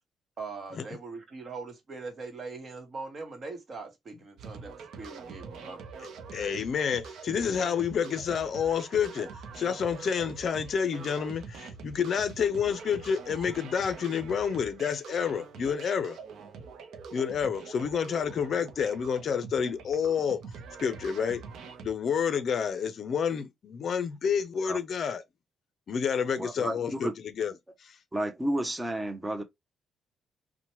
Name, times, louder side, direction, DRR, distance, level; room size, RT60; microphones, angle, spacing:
voice 1, 0.4-5.9, right 4 dB, 45° right, 1.0 m, -41 dB
sound 1, 4.4-21.9, right 5 dB, 75° right, 0.5 m, -45 dB
voice 2, 6.0-16.2 17.1-20.4 20.8-21.5 21.8-25.2 25.9-27.5 27.8-28.0, left 7 dB, 55° left, 0.4 m, -29 dB
voice 3, 26.4-27.1 28.1-29.4, right 1 dB, 15° right, 0.5 m, -31 dB
2.9 x 2.1 x 2.9 m
cardioid pair, 90°, 0 cm